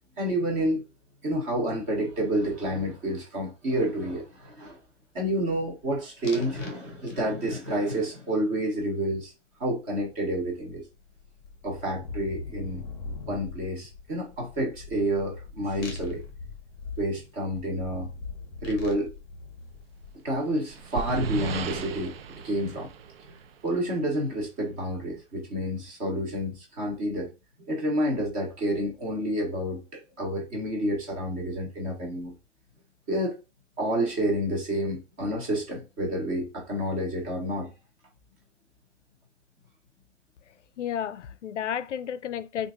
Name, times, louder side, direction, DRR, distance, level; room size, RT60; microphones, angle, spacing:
voice 1, 0.2-0.8 1.2-4.8 5.1-9.3 9.6-10.8 11.6-12.8 13.3-16.2 17.0-18.1 18.6-19.1 20.2-22.1 22.4-22.9 23.6-27.3 27.7-32.3 33.1-33.4 33.8-37.7, equal, 15° right, 0.9 m, -29 dB
sound 1, 6.2-6.8 7.1-7.5 10.0-10.1 10.3-20.4, left 4 dB, 20° left, 0.8 m, -41 dB
sound 2, 20.1-23.8, right 5 dB, 55° right, 0.5 m, -35 dB
voice 2, 40.8-42.7, left 9 dB, 75° left, 0.5 m, -32 dB
3.0 x 2.5 x 3.6 m
hypercardioid pair, 160°, 36 cm